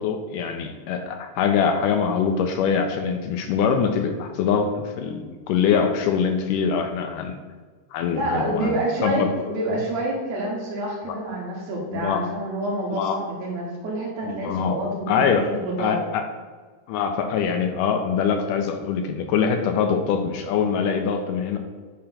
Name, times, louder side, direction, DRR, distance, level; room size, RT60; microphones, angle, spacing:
voice 1, 0.0-7.4 7.9-8.8 9.0-9.3 11.1-11.2 11.9-12.2 12.9-13.2 14.2-14.8 15.1-15.5 15.8-16.2 16.9-21.6, left 6 dB, 80° left, 5 dB, 2.1 m, -23 dB
voice 2, 8.1-16.0, right 1 dB, 60° right, -3 dB, 2.3 m, -28 dB
8.7 x 2.9 x 5.7 m, 1.5 s
omnidirectional pair, 3.9 m